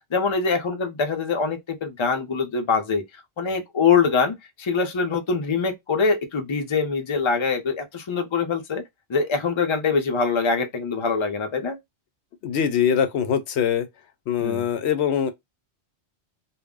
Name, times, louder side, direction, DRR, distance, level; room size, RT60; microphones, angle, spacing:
voice 1, 0.1-3.0 3.4-8.8 9.1-11.8 14.4-14.7, left 5 dB, 35° left, 0.5 m, -24 dB
voice 2, 12.4-13.9 14.3-15.3, left 8 dB, 80° left, 0.9 m, -22 dB
2.3 x 2.0 x 3.6 m
omnidirectional pair, 1.1 m